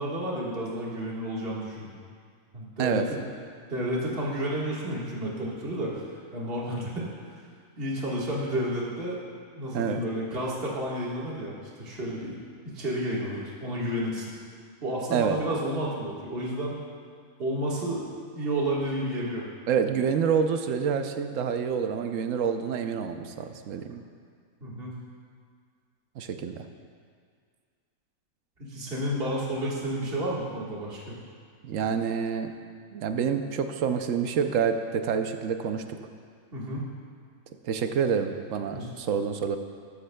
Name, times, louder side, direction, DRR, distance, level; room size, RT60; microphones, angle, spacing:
voice 1, 0.0-2.0 2.5-3.2 3.7-7.1 7.8-9.2 9.6-12.4 12.6-14.3 14.8-16.8 17.4-18.1 18.4-19.4 24.6-24.9 28.6-31.2 36.5-36.9 38.7-38.9, right 1 dB, 40° right, -5 dB, 1.8 m, -31 dB
voice 2, 19.7-24.0 26.2-26.7 31.6-32.5 32.9-36.0 37.6-39.6, right 7 dB, 70° right, 7 dB, 1.0 m, -27 dB
14.0 x 11.5 x 2.2 m, 2.1 s
omnidirectional pair, 1.5 m